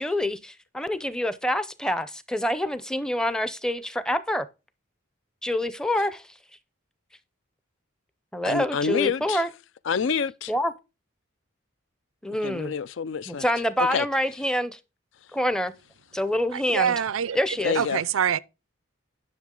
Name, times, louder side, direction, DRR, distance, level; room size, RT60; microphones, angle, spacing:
voice 1, 0.0-4.5 5.4-6.2 8.3-9.5 10.5-10.7 12.2-12.7 13.3-14.8 15.3-15.7 16.1-16.9 17.3-17.8, left 1 dB, 5° left, 0.6 m, -26 dB
voice 2, 8.4-9.4 9.9-10.5 12.4-13.4 13.9-14.1 17.6-18.0, left 6 dB, 65° left, 0.4 m, -27 dB
voice 3, 16.5-17.4 17.7-18.4, right 8 dB, 85° right, 0.5 m, -25 dB
10.5 x 6.2 x 3.8 m
head